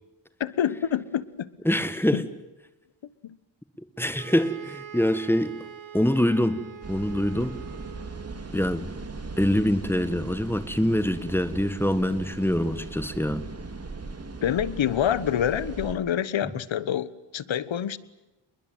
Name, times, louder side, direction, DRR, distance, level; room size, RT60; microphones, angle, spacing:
voice 1, 0.4-1.5 2.1-2.2 3.2-3.4 14.4-18.0, left 9 dB, 70° left, 17 dB, 1.4 m, -27 dB
voice 2, 1.6-2.2 4.0-5.6 5.9-7.6 8.5-8.8 9.4-13.5, left 1 dB, 5° left, 12 dB, 1.7 m, -24 dB
sound 1, 4.2-8.6, right 9 dB, 70° right, 3.0 m, -44 dB
sound 2, 6.8-15.9, right 3 dB, 30° right, 2.8 m, -39 dB
28.5 x 21.5 x 9.3 m, 1.0 s
wide cardioid pair, 125°, 47 cm